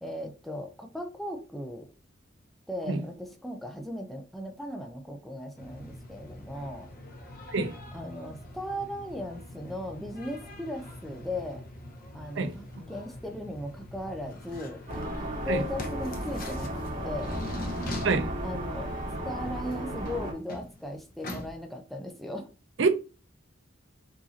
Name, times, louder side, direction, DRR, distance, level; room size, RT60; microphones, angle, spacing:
voice 1, 0.0-1.9 2.7-6.9 7.9-11.6 12.1-14.8 15.4-16.7 17.0-17.4 18.4-18.9 19.2-22.5, left 1 dB, ahead, 0.4 m, -37 dB
voice 2, 2.9-3.0 7.5-7.8 12.4-12.5 15.5-15.6 18.0-18.3 22.8-22.9, right 4 dB, 65° right, 0.5 m, -25 dB
sound 1, 5.6-21.5, left 1 dB, 45° left, 0.8 m, -43 dB
sound 2, 14.9-20.3, right 1 dB, 45° right, 2.0 m, -34 dB
4.8 x 2.6 x 2.7 m
head